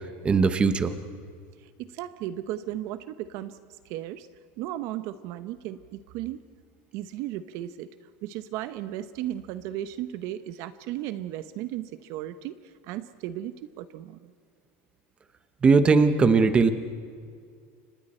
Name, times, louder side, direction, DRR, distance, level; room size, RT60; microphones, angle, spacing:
voice 1, 0.2-1.0 15.6-16.7, right 4 dB, 15° right, 10 dB, 1.0 m, -19 dB
voice 2, 1.6-3.6 3.8-4.3 4.6-6.4 6.9-7.9 8.2-14.3, right 13 dB, 50° right, 12 dB, 0.8 m, -35 dB
30.0 x 25.0 x 4.4 m, 2.2 s
supercardioid pair, 165°, 6 cm